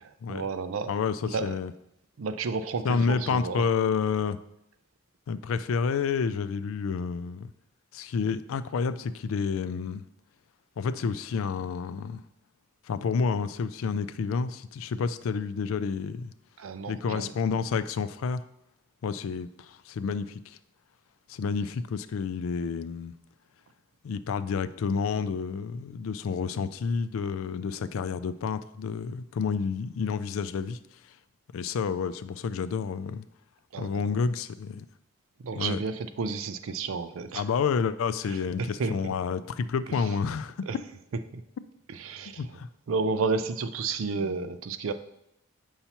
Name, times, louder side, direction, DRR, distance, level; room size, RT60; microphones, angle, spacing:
voice 1, 0.3-0.9 1.3-1.6 2.2-3.6 16.6-17.3 33.7-34.0 35.4-37.4 38.3-39.1 39.9-40.0 40.7-40.8 41.3-41.4 41.9-42.5 42.9-44.9, right 4 dB, 75° right, 11 dB, 0.4 m, -31 dB
voice 2, 0.9-1.7 2.8-4.4 5.3-7.5 7.9-10.0 10.8-12.2 12.9-16.3 16.9-18.4 19.0-20.6 21.3-23.1 24.0-30.8 31.5-33.2 33.8-34.8 35.5-35.8 37.3-40.5 42.4-42.7 44.2-44.4, left 5 dB, 75° left, 13 dB, 0.3 m, -29 dB
6.9 x 5.6 x 2.9 m, 0.79 s
head